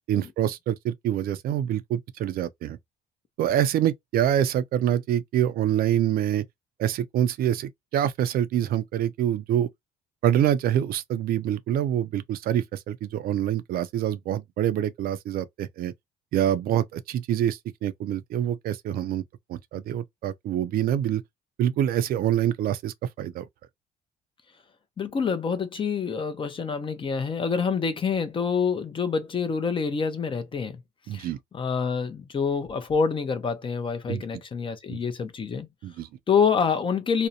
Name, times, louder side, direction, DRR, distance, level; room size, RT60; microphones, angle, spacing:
voice 1, 0.1-2.8 3.4-6.4 6.8-9.7 10.2-15.9 16.3-19.2 19.5-21.2 21.6-23.5 31.1-31.4 34.1-34.2 34.9-35.0 35.8-36.1, right 11 dB, 60° right, 0.4 m, -26 dB
voice 2, 25.0-30.8 31.1-31.3 31.5-35.7 36.3-37.3, left 6 dB, 30° left, 0.5 m, -26 dB
2.5 x 2.1 x 2.7 m
cardioid pair, 110°, 17 cm